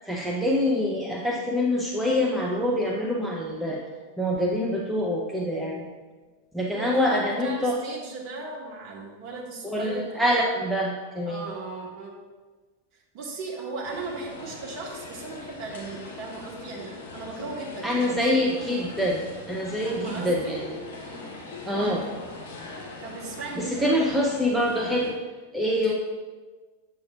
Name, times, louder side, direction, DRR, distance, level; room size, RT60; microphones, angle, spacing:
voice 1, 0.1-3.8 4.2-5.9 6.5-7.8 9.6-11.5 17.8-20.7 21.7-22.0 23.6-25.1 25.5-25.9, left 1 dB, 5° right, -2 dB, 0.7 m, -25 dB
voice 2, 6.7-10.2 11.3-12.1 13.1-18.3 19.8-20.6 21.0-21.3 21.7-22.2 23.0-24.1 25.7-25.9, right 3 dB, 40° right, -3 dB, 1.7 m, -37 dB
sound 1, 13.8-25.1, left 3 dB, 55° left, 1.3 m, -41 dB
7.6 x 6.9 x 2.4 m, 1.3 s
figure-of-eight pair, 90°, 0 cm